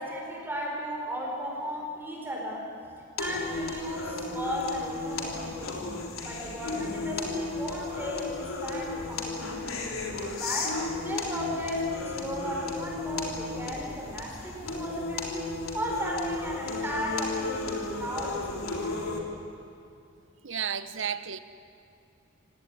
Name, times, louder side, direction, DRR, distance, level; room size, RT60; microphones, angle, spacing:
voice 1, 0.0-2.7 3.2-5.9 6.2-9.6 10.1-18.9, equal, 10° right, -1 dB, 4.3 m, -36 dB
sound 1, 3.2-19.2, left 3 dB, 85° left, 3.7 m, -34 dB
voice 2, 20.4-21.4, right 8 dB, 65° right, 12 dB, 1.1 m, -32 dB
26.5 x 17.5 x 9.9 m, 2.5 s
head